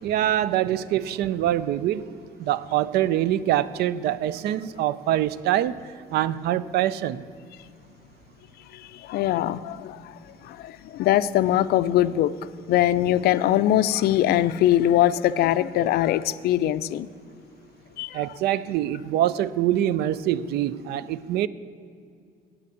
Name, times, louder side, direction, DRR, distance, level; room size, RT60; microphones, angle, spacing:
voice 1, 0.0-2.1 2.4-5.8 6.1-7.2 18.1-21.5, right 12 dB, 70° right, 0.4 m, -24 dB
voice 2, 8.7-10.2 10.4-12.3 12.7-17.1 18.0-18.2, left 13 dB, 70° left, 0.4 m, -22 dB
8.5 x 6.7 x 8.6 m
cardioid pair, 110°, 17 cm